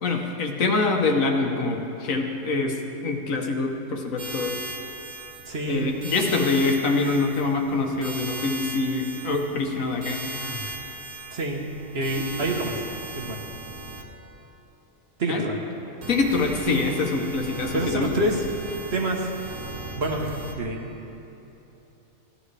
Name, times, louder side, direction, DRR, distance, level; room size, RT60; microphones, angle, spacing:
voice 1, 0.0-2.8 3.0-4.5 5.6-10.2 15.3-15.5 16.1-18.1, left 3 dB, 70° left, 2 dB, 1.4 m, -25 dB
sound 1, 4.2-14.0 16.0-20.5, right 2 dB, 80° right, 1.8 m, -37 dB
voice 2, 5.5-5.8 11.3-11.7 11.9-12.8 13.1-13.4 15.2-15.6 17.7-18.4 18.9-19.3 19.9-20.9, right 1 dB, 50° right, 1 dB, 1.3 m, -27 dB
Sigh, 10.3-10.8, right 1 dB, 30° left, 1.8 m, -39 dB
17.0 x 11.5 x 3.3 m, 3.0 s
omnidirectional pair, 1.5 m